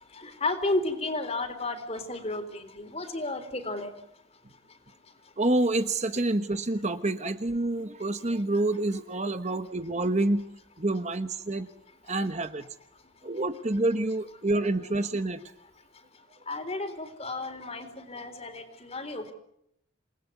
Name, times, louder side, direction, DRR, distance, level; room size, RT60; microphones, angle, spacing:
voice 1, 0.1-3.9 16.5-19.3, left 2 dB, 30° left, 9 dB, 3.8 m, -32 dB
voice 2, 5.4-10.4 10.8-11.7 12.1-12.7 13.2-15.4, right 2 dB, 35° right, 9 dB, 1.1 m, -27 dB
28.5 x 19.5 x 9.4 m, 0.76 s
head